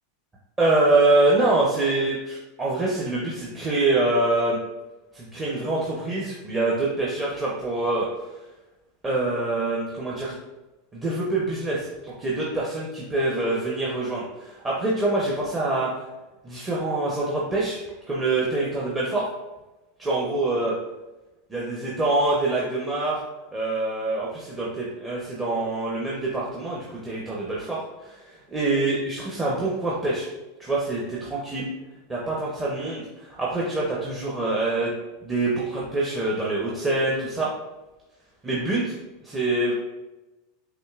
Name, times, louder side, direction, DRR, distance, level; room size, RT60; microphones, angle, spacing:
voice 1, 0.6-4.6 5.1-8.3 9.0-10.3 10.9-15.9 16.4-17.8 18.1-19.3 20.0-20.7 21.5-23.2 23.5-30.3 30.6-31.7 32.1-34.9 35.2-37.5 38.4-38.9 39.2-39.7, right 2 dB, 20° right, -5 dB, 0.8 m, -25 dB
6.1 x 2.7 x 2.4 m, 1.1 s
supercardioid pair, 115°, 0 cm